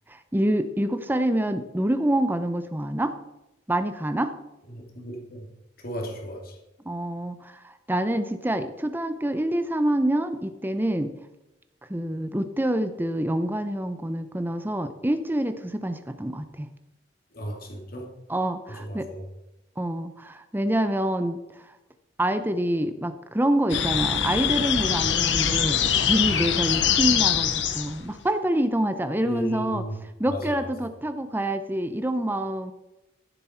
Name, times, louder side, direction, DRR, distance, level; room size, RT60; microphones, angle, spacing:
voice 1, 0.1-3.1 3.7-4.3 6.9-11.1 11.9-16.7 18.3-19.1 19.8-21.7 22.2-29.8 30.2-32.7, right 1 dB, 10° right, 10 dB, 0.6 m, -26 dB
voice 2, 4.7-5.5 5.8-6.6 17.3-18.1 18.7-19.2 29.2-30.0 30.3-30.7, equal, 50° left, 1 dB, 2.4 m, -35 dB
sound 1, 23.7-28.1, left 8 dB, 70° left, 0.9 m, -23 dB
14.5 x 7.4 x 4.3 m, 0.95 s
head